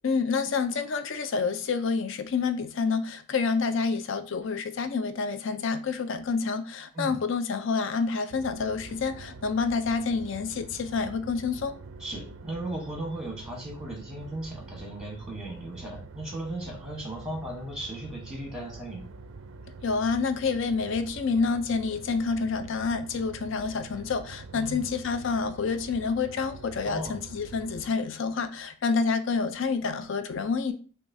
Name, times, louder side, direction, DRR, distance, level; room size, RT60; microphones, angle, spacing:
voice 1, 0.0-11.7 19.8-30.7, left 4 dB, 60° left, 0.4 m, -28 dB
sound 1, 8.3-27.9, right 3 dB, 60° right, 0.4 m, -45 dB
voice 2, 12.0-19.1 24.5-24.8 26.8-27.2, right 1 dB, 5° right, 1.0 m, -36 dB
5.9 x 2.3 x 2.6 m
head